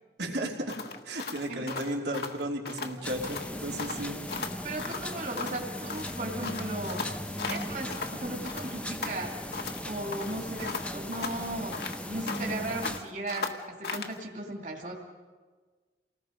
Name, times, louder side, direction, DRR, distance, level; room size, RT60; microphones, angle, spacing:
voice 1, 0.2-0.8 1.0-4.4, right 1 dB, 75° right, 1 dB, 3.0 m, -34 dB
sound 1, 0.7-3.0 3.2-3.5 3.8-5.6 5.9-8.2 8.4-9.8 10.1-12.6 12.8-14.2, left 4 dB, 60° left, 1.4 m, -37 dB
voice 2, 1.5-1.8 3.7-4.1 4.6-7.1 7.5-9.4 9.8-14.9, right 2 dB, 45° right, 0 dB, 2.7 m, -37 dB
sound 2, 3.0-13.0, left 1 dB, 5° left, 0.8 m, -38 dB
28.5 x 19.0 x 5.2 m, 1.4 s
head